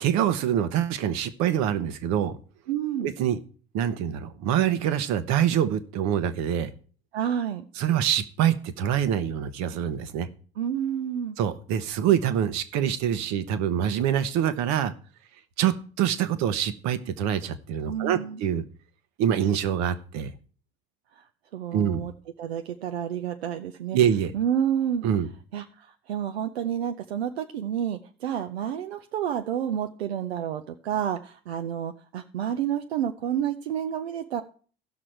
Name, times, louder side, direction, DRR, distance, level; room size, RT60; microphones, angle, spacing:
voice 1, 0.0-2.3 3.0-3.4 3.7-6.7 7.8-10.3 11.4-14.9 15.6-18.6 19.2-20.3 21.7-22.0 23.9-24.3 25.0-25.3, right 10 dB, 60° right, 12 dB, 1.1 m, -25 dB
voice 2, 2.7-3.1 7.1-7.6 10.6-11.4 17.9-18.4 21.1-21.2 21.5-22.1 22.4-24.0 24.3-25.0 25.5-34.4, right 9 dB, 85° right, 7 dB, 0.7 m, -29 dB
16.0 x 6.2 x 4.5 m, 0.42 s
hypercardioid pair, 65°, 30 cm